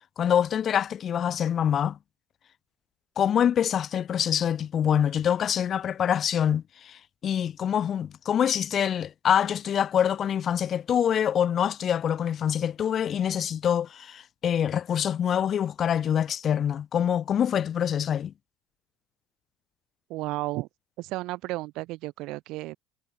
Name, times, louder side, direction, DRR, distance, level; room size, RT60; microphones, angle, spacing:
voice 1, 0.2-2.0 3.2-18.3, left 9 dB, 40° left, 0.8 m, -25 dB
voice 2, 20.1-20.7 21.0-22.8, right 19 dB, 65° right, 0.8 m, -33 dB
supercardioid pair, 95°, 0 cm